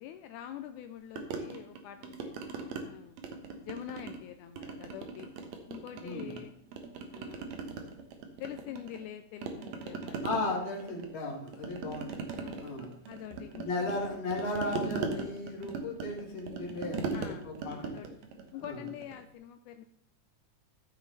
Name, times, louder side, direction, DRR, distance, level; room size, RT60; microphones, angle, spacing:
voice 1, 0.0-2.3 2.8-3.2 3.5-5.3 5.7-6.5 7.1-7.5 8.4-10.3 12.4-12.7 13.1-13.9 17.1-18.1 18.5-19.9, left 11 dB, 80° left, 8 dB, 1.9 m, -45 dB
sound 1, 1.2-2.8 3.2-4.2 4.6-6.4 6.7-9.1 9.4-19.2, right 4 dB, 65° right, 2.3 m, -39 dB
voice 2, 6.0-6.3 10.2-12.9 13.5-18.1 18.6-18.8, left 2 dB, 25° left, -2 dB, 2.0 m, -36 dB
13.5 x 6.3 x 4.1 m, 0.74 s
omnidirectional pair, 3.7 m